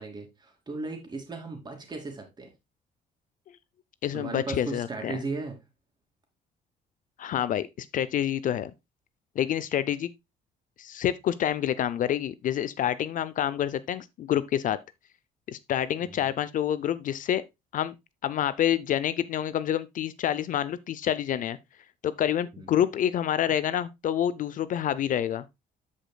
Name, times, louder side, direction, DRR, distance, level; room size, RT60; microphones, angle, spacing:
voice 1, 0.0-2.5 4.1-5.6 16.0-16.4 22.5-22.7, right 3 dB, 25° right, 2.7 m, -36 dB
voice 2, 4.0-5.2 7.2-8.7 9.4-10.1 10.8-14.8 15.5-17.4 17.7-17.9 18.2-21.6 22.0-25.4, left 10 dB, 50° left, 0.5 m, -27 dB
13.5 x 5.1 x 2.2 m
cardioid pair, 135°, 17 cm